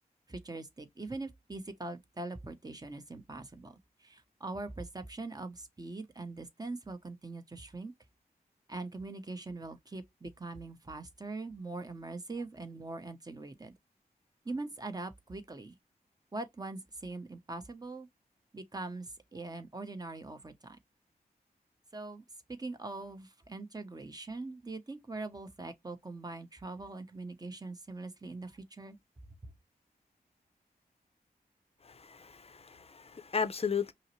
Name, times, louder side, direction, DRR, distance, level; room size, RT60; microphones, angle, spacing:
voice 1, 0.3-3.7 4.0-7.9 8.7-13.7 14.4-15.8 16.3-18.1 18.5-20.8 21.9-22.2 22.5-29.0 29.4-29.5, right 3 dB, 25° right, 0.8 m, -42 dB
voice 2, 31.8-33.9, left 6 dB, 40° left, 0.5 m, -35 dB
5.4 x 2.0 x 3.1 m
wide cardioid pair, 85°, 16 cm